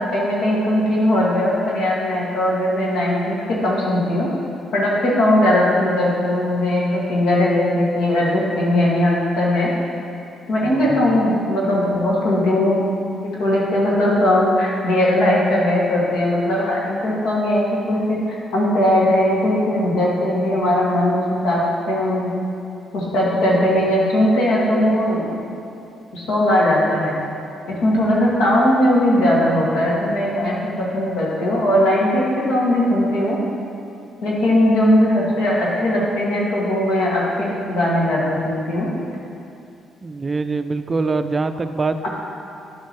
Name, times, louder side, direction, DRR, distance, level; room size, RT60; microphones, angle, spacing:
voice 1, 0.0-4.3 4.7-9.7 10.5-12.8 13.1-21.6 21.9-22.3 22.9-25.4 26.1-27.2 27.7-33.4 34.2-38.9 42.0-42.1, left 1 dB, 80° left, -5 dB, 2.0 m, -19 dB
voice 2, 10.6-11.2 40.0-42.1, right 3 dB, 30° right, 10 dB, 0.3 m, -24 dB
10.5 x 7.1 x 3.1 m, 2.6 s
cardioid pair, 90°, 0 cm